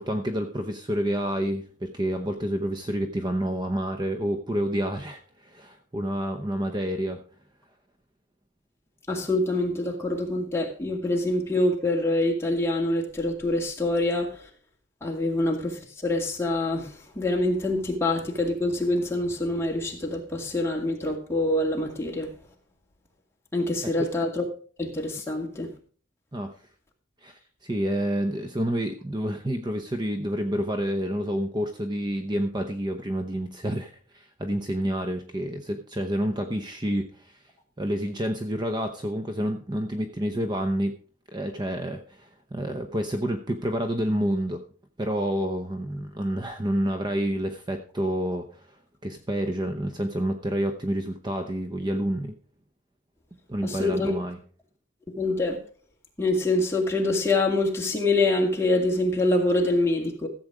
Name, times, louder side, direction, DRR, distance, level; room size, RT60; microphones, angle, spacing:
voice 1, 0.0-7.2 26.3-26.5 27.2-37.4 37.8-40.9 41.3-44.6 45.0-48.8 49.0-52.3 53.5-54.4, equal, 20° right, 0.8 m, -29 dB
voice 2, 9.1-14.4 15.0-22.3 23.5-24.5 24.8-25.7 53.6-54.1 55.1-55.6 56.2-60.3, left 2 dB, 15° left, 2.3 m, -25 dB
14.5 x 7.8 x 4.9 m
head